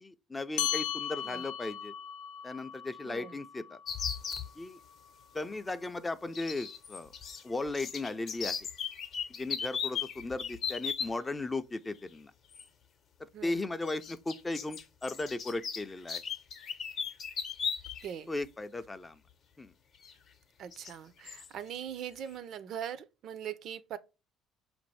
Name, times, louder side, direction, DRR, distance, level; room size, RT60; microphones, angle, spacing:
voice 1, 0.0-1.9 2.4-3.8 4.6-4.8 5.3-7.1 7.4-8.6 9.3-12.3 13.2-16.2 18.3-19.2 19.6-19.7, left 2 dB, 15° left, 0.3 m, -36 dB
sound 1, 0.6-5.4, left 11 dB, 85° left, 0.4 m, -38 dB
voice 2, 3.0-3.4 13.3-13.6 18.0-18.3 20.6-24.0, right 9 dB, 60° right, 0.4 m, -41 dB
sound 2, 3.9-4.5 6.3-7.4 7.7-11.1 12.5-12.6 13.8-18.1 18.4-18.5 20.0-20.1 20.7-20.9 21.3-21.5, left 7 dB, 45° left, 0.7 m, -37 dB
5.2 x 2.6 x 3.1 m
cardioid pair, 120°, 0 cm